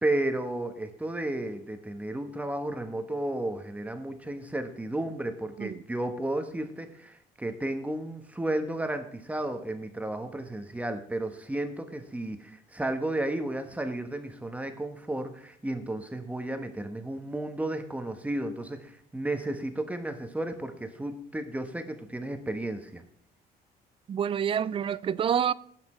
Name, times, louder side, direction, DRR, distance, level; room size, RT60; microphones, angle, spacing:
voice 1, 0.0-23.0, right 1 dB, 10° right, 1.2 m, -33 dB
voice 2, 24.1-25.5, right 8 dB, 30° right, 0.4 m, -27 dB
16.0 x 6.0 x 4.4 m
cardioid pair, 110°, 17 cm